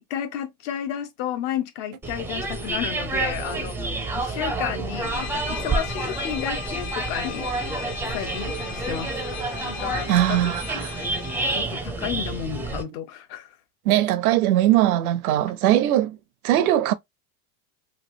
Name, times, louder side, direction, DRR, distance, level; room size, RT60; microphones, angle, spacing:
voice 1, 0.0-7.5 8.1-9.2 9.6-10.9 11.5-13.6, left 10 dB, 60° left, 0.9 m, -32 dB
sound 1, 2.0-12.8, right 3 dB, 5° right, 0.4 m, -29 dB
sound 2, 5.0-11.6, left 6 dB, 85° left, 1.1 m, -36 dB
voice 2, 10.1-10.9 13.9-16.2 16.4-16.9, right 13 dB, 80° right, 0.7 m, -20 dB
3.1 x 2.4 x 2.7 m
supercardioid pair, 115°, 43 cm